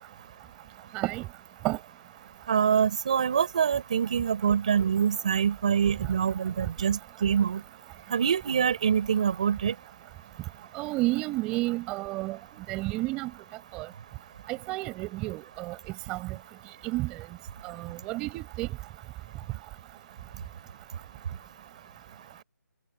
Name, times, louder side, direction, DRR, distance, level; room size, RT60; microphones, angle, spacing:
voice 1, 0.9-1.2 1.6-1.8 10.8-12.4 12.7-13.3 13.7-13.9 14.5-15.7 16.1-16.2 16.8-17.1 17.8-18.7, right 20 dB, 5° right, 5.4 m, -30 dB
voice 2, 2.5-7.6 8.1-9.7, right 7 dB, 20° right, 5.2 m, -25 dB
hypercardioid pair, 180°, 10 cm